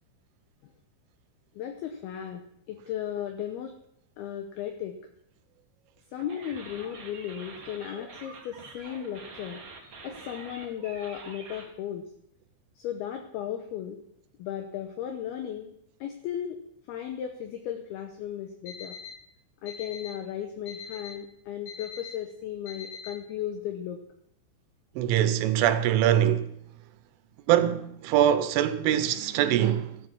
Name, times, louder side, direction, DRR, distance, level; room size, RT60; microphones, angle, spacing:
voice 1, 1.6-3.8 4.2-5.0 6.1-9.6 10.0-12.1 12.8-14.0 14.4-15.7 16.0-16.6 16.9-19.0 19.6-24.0, left 10 dB, 75° left, 2.4 m, -35 dB
sound 1, 6.3-11.7, right 4 dB, 40° right, 2.4 m, -46 dB
Alarm, 18.7-19.1 19.7-20.1 20.7-21.1 21.7-22.1 22.7-23.1, left 8 dB, 55° left, 5.9 m, -41 dB
voice 2, 25.0-26.5 27.5-30.0, right 11 dB, 85° right, 3.3 m, -23 dB
13.5 x 10.0 x 6.0 m
omnidirectional pair, 5.5 m